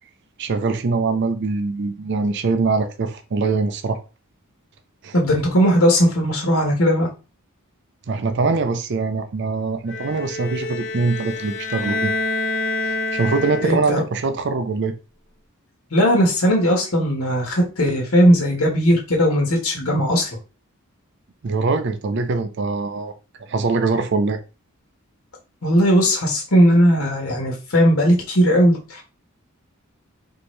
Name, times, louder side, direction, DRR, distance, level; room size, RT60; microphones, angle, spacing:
voice 1, 0.4-4.0 5.0-5.1 8.1-12.1 12.8-14.9 21.4-23.1 23.5-24.4, right 4 dB, 55° right, 0.5 m, -23 dB
voice 2, 5.1-7.1 13.6-14.0 15.9-20.4 25.6-29.0, equal, 85° left, 1.4 m, -18 dB
Bowed string instrument, 9.9-14.0, left 2 dB, 55° left, 1.0 m, -27 dB
4.3 x 2.8 x 3.2 m
head